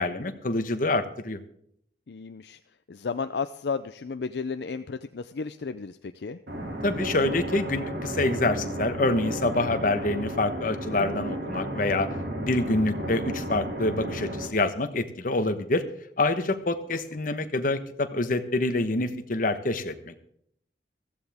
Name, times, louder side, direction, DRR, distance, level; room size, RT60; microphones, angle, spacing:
voice 1, 0.0-1.4 6.8-12.1 12.4-15.8 16.2-20.2, left 2 dB, 50° left, 9 dB, 1.1 m, -26 dB
voice 2, 2.1-2.6 2.9-6.4 12.7-13.1, left 5 dB, 70° left, 10 dB, 0.5 m, -33 dB
sound 1, 6.5-14.5, right 1 dB, 70° right, 2.7 m, -33 dB
15.0 x 15.0 x 3.5 m, 0.70 s
head